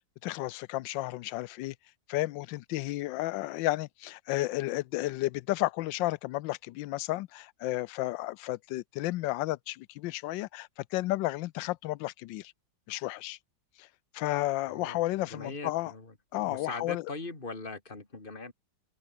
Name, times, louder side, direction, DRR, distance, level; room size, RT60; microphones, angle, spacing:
voice 1, 0.2-1.7 2.1-12.5 12.9-13.4 13.8-13.9 14.1-15.9 16.3-17.1, left 17 dB, 80° left, 1.3 m, -32 dB
voice 2, 14.7-15.0 15.3-16.1 16.4-18.5, left 3 dB, 25° left, 3.8 m, -40 dB
open air
omnidirectional pair, 2.0 m